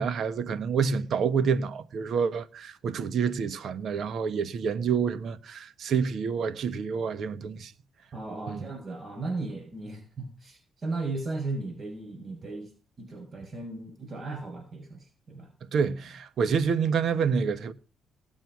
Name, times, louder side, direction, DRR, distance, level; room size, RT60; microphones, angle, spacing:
voice 1, 0.0-7.7 8.5-8.6 15.6-17.7, right 6 dB, 65° right, 1.3 m, -28 dB
voice 2, 8.1-12.7 13.0-15.5, right 3 dB, 40° right, 6.3 m, -36 dB
19.0 x 7.9 x 6.2 m
cardioid pair, 90°, 0 cm